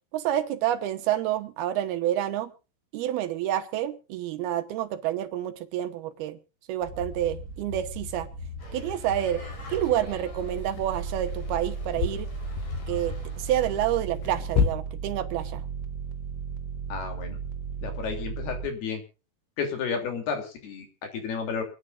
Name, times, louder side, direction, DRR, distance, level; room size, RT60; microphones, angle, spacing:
voice 1, 0.1-2.5 2.9-6.4 6.7-8.3 8.7-9.4 9.7-12.3 12.9-15.7, right 12 dB, 75° right, 10 dB, 2.8 m, -28 dB
sound 1, 6.8-18.7, right 4 dB, 55° right, 1.2 m, -36 dB
sound 2, 8.6-14.0, left 2 dB, 40° left, 6.1 m, -48 dB
sound 3, 9.7-9.8 10.6-14.7, left 7 dB, 90° left, 3.8 m, -31 dB
voice 2, 16.9-17.4 17.8-19.0 19.6-21.6, left 6 dB, 70° left, 5 dB, 5.0 m, -32 dB
28.0 x 10.0 x 2.5 m, 0.32 s
omnidirectional pair, 4.7 m